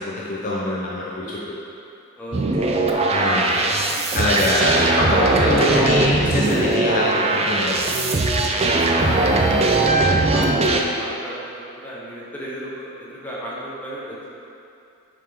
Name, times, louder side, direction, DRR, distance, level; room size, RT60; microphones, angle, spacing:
voice 1, 0.0-1.5 3.1-3.5 4.1-8.1 9.2-9.5, left 1 dB, 40° left, -5 dB, 0.5 m, -24 dB
voice 2, 2.2-2.9 8.5-14.2, equal, 10° left, -7 dB, 0.9 m, -34 dB
sound 1, 2.3-10.8, right 2 dB, 30° right, 0.4 m, -20 dB
7.3 x 3.7 x 3.5 m, 2.6 s
head